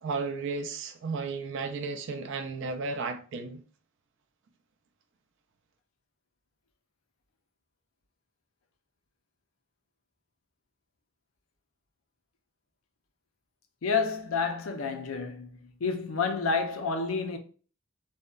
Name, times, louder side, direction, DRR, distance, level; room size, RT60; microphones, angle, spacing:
voice 1, 0.0-3.6, right 4 dB, 60° right, 0.4 m, -34 dB
voice 2, 13.8-17.4, left 4 dB, 80° left, 0.5 m, -29 dB
2.7 x 2.2 x 2.3 m
head